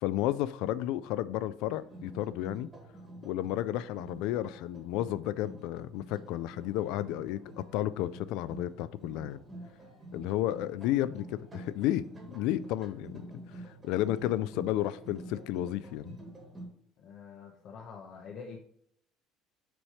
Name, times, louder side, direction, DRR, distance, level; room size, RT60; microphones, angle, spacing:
voice 1, 0.0-2.7 3.2-9.4 10.1-12.0 12.3-13.3 13.8-16.2, left 13 dB, 60° left, 0.3 m, -32 dB
sound 1, 1.7-16.7, right 1 dB, 15° right, 1.5 m, -49 dB
voice 2, 17.0-18.6, left 5 dB, 40° left, 0.7 m, -46 dB
6.0 x 3.2 x 5.6 m
cardioid pair, 175°, 0 cm